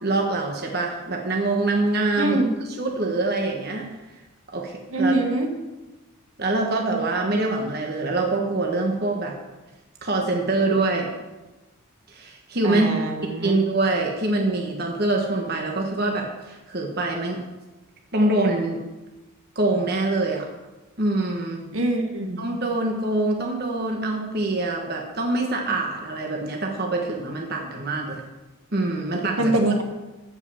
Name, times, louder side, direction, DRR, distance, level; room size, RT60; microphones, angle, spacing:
voice 1, 0.0-2.4 2.8-3.9 4.5-5.2 6.4-9.4 10.0-11.1 12.1-12.9 13.2-17.4 18.1-18.8 19.5-20.5 21.0-21.6 22.4-28.2 28.7-29.5, right 2 dB, 45° right, 1 dB, 1.4 m, -24 dB
voice 2, 2.2-2.5 4.9-5.5 12.6-13.6 21.7-22.4 29.4-29.8, right 1 dB, 70° right, 4 dB, 1.6 m, -23 dB
14.5 x 5.4 x 7.2 m, 1.1 s
head